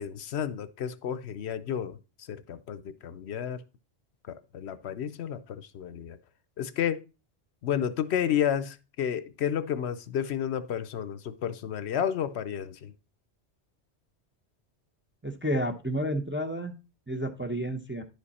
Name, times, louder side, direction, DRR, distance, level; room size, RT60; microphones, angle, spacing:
voice 1, 0.0-2.0 2.3-3.6 4.3-6.2 6.6-7.0 7.6-12.9, left 9 dB, 70° left, 0.9 m, -31 dB
voice 2, 15.2-16.7 17.1-18.0, equal, 15° right, 0.6 m, -30 dB
10.5 x 5.2 x 4.1 m
omnidirectional pair, 1.1 m